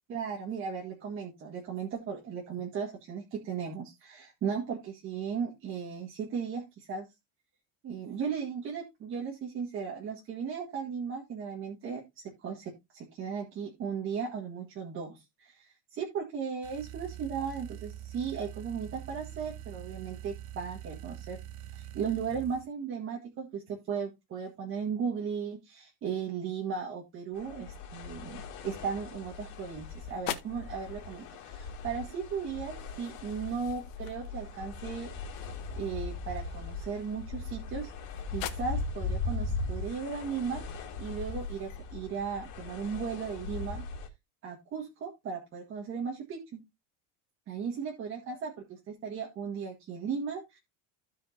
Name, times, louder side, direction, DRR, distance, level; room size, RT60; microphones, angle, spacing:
voice 1, 0.1-7.1 7.8-21.4 21.7-35.1 35.7-37.9 38.3-43.8 44.4-46.6 47.5-48.5 49.0-50.6, right 6 dB, 30° right, 0 dB, 1.6 m, -36 dB
sound 1, 16.6-22.7, right 11 dB, 65° right, 0.9 m, -44 dB
sound 2, 27.3-44.1, left 3 dB, 50° left, 2.5 m, -39 dB
sound 3, 29.3-41.8, left 11 dB, 75° left, 1.7 m, -47 dB
15.5 x 5.1 x 2.7 m, 0.21 s
cardioid pair, 170°, 38 cm